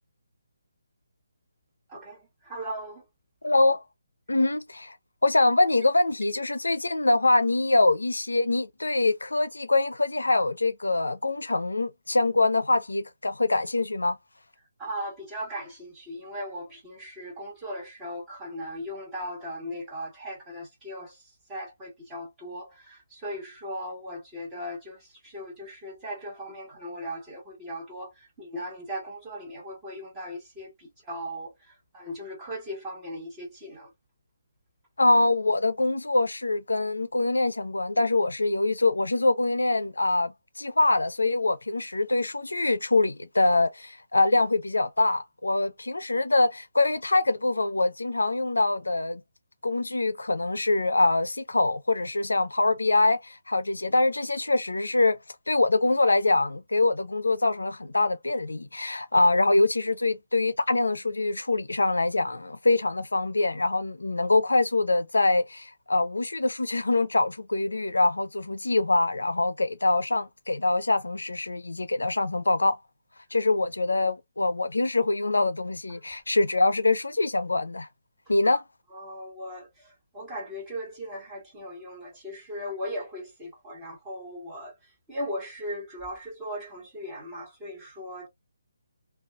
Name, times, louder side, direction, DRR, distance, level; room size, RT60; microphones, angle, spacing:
voice 1, 1.9-3.0 14.8-33.9 78.4-78.6 78.9-88.3, equal, 15° right, 1.3 m, -38 dB
voice 2, 3.4-3.8 4.3-5.0 5.2-14.2 35.0-49.2 49.6-55.2 55.5-72.8 73.3-77.9 78.3-78.6, left 2 dB, 85° left, 0.5 m, -24 dB
2.4 x 2.3 x 2.4 m
figure-of-eight pair, 150°, 0 cm